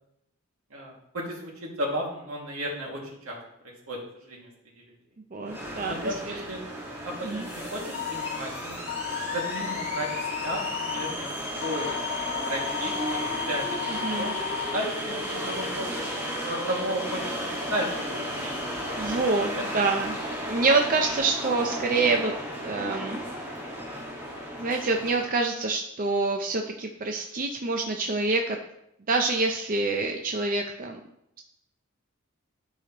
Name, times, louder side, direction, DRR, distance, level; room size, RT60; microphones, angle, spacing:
voice 1, 0.7-3.4 3.9-4.5 5.9-6.6 7.0-8.8 9.3-10.6 10.9-11.9 12.5-13.2 13.5-15.9 16.4-18.8 19.4-19.6, equal, 80° right, -2 dB, 2.1 m, -34 dB
voice 2, 5.3-6.1 7.2-7.5 13.9-14.3 15.9-16.0 19.0-20.2 20.5-22.3 22.6-23.2 24.6-28.6 29.1-31.0, right 3 dB, 40° right, 3 dB, 0.6 m, -26 dB
sound 1, 5.5-25.3, equal, 10° right, 1.6 m, -34 dB
sound 2, 7.9-8.4 8.9-11.1 11.6-14.8, left 10 dB, 45° left, 0.5 m, -34 dB
11.5 x 4.9 x 3.0 m, 0.79 s
head